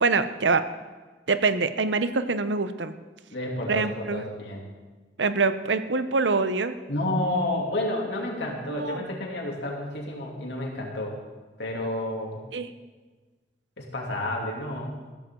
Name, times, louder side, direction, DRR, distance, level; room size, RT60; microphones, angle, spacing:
voice 1, 0.0-0.6 1.3-3.0 3.7-4.2 5.2-6.8 8.7-9.1 12.5-12.7, right 4 dB, 85° right, 11 dB, 0.8 m, -25 dB
voice 2, 3.3-4.6 6.9-11.2 11.6-12.4 13.8-14.9, left 1 dB, 70° left, -1 dB, 2.9 m, -30 dB
15.0 x 14.5 x 3.8 m, 1.3 s
head